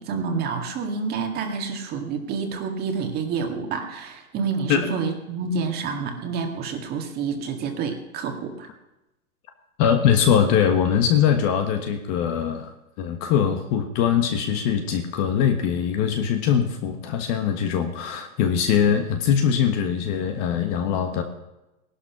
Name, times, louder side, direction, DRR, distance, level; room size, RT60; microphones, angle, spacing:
voice 1, 0.0-8.7, right 5 dB, 20° right, 4 dB, 2.0 m, -28 dB
voice 2, 9.8-12.7 13.0-21.2, left 8 dB, 30° left, 6 dB, 1.4 m, -22 dB
17.5 x 11.5 x 6.0 m, 0.96 s
hypercardioid pair, 150°, 44 cm